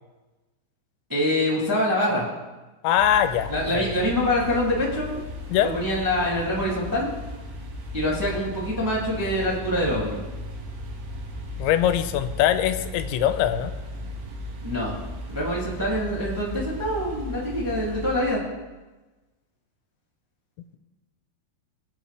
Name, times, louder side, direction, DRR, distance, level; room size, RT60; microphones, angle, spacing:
voice 1, 1.1-2.3 3.5-5.2 5.6-7.1 7.9-10.2 14.6-14.9 15.3-18.4, left 1 dB, 35° right, -6 dB, 0.3 m, -25 dB
voice 2, 2.8-4.0 5.5-5.7 11.6-13.7, left 11 dB, 85° left, 10 dB, 3.0 m, -22 dB
sound 1, 3.0-18.2, left 1 dB, 65° right, 3.3 m, -36 dB
21.5 x 8.8 x 3.3 m, 1.2 s
omnidirectional pair, 5.2 m